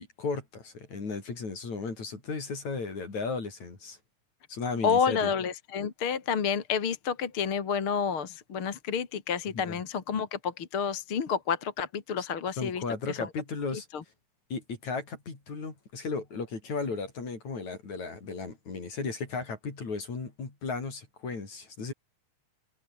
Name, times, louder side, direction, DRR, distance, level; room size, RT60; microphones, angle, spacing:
voice 1, 0.0-4.0 4.5-5.3 9.5-9.8 12.6-13.9 14.5-21.9, left 4 dB, 70° left, 6.9 m, -35 dB
voice 2, 4.8-13.2 13.9-14.0, left 6 dB, 50° left, 2.8 m, -29 dB
omnidirectional pair, 3.4 m